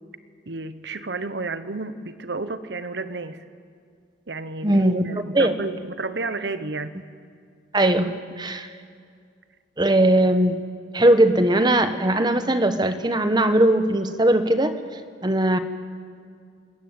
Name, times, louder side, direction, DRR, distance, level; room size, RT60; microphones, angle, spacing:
voice 1, 0.5-3.4 4.3-7.0, right 3 dB, 60° right, 12 dB, 1.0 m, -31 dB
voice 2, 4.6-5.5 7.7-8.7 9.8-10.6 10.9-14.7 15.2-15.6, right 1 dB, 25° right, 10 dB, 1.0 m, -19 dB
27.5 x 14.5 x 8.9 m, 2.2 s
head